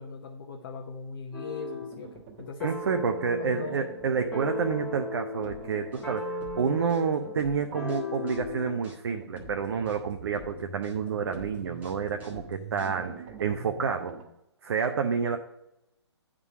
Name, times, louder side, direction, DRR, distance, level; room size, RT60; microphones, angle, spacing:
voice 1, 0.0-2.7 3.3-3.8, left 4 dB, 45° left, 1 dB, 0.9 m, -40 dB
sound 1, 1.3-2.0 2.6-8.8, left 2 dB, 10° left, 1.3 m, -37 dB
sound 2, 1.9-2.5 2.8-3.2 3.5-4.4 4.7-5.0 5.4-6.2 6.5-6.9 7.2-8.1 8.4-8.7 9.1-14.2, right 5 dB, 30° right, 1.3 m, -46 dB
voice 2, 2.6-13.1 13.4-14.1 14.6-15.4, right 6 dB, 55° right, 5 dB, 0.7 m, -29 dB
sound 3, 5.4-13.3, left 1 dB, 10° right, 1.3 m, -48 dB
9.4 x 3.8 x 5.9 m, 0.86 s
figure-of-eight pair, 135°, 15 cm